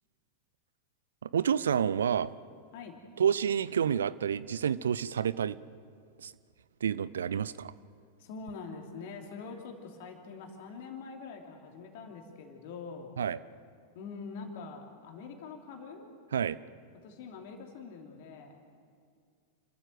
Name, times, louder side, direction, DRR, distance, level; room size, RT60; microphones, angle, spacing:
voice 1, 1.2-2.3 3.2-5.6 6.2-6.3 6.8-7.7 13.2-13.4 16.3-16.6, right 8 dB, 65° right, 18 dB, 0.5 m, -29 dB
voice 2, 8.2-13.1 13.9-16.1 17.0-18.6, left 5 dB, 50° left, 3 dB, 2.9 m, -44 dB
29.5 x 13.5 x 7.8 m, 2.2 s
figure-of-eight pair, 90°, 0 cm